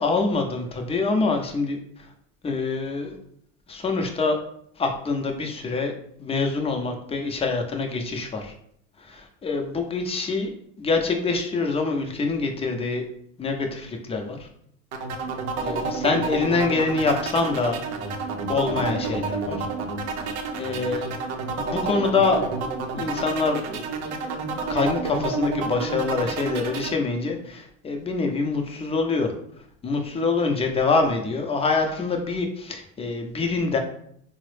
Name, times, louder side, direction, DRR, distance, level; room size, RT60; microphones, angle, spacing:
voice 1, 0.0-2.1 2.4-3.1 3.7-4.4 4.8-5.9 6.2-8.5 9.0-10.5 10.8-13.0 13.4-14.5 15.6-17.8 18.5-19.7 20.2-21.1 21.6-22.5 22.9-23.8 24.7-29.3 29.8-33.8, left 3 dB, 15° left, 3 dB, 0.5 m, -25 dB
sound 1, 14.9-26.9, right 4 dB, 85° right, 0.6 m, -29 dB
3.6 x 2.0 x 3.2 m, 0.67 s
supercardioid pair, 95°, 34 cm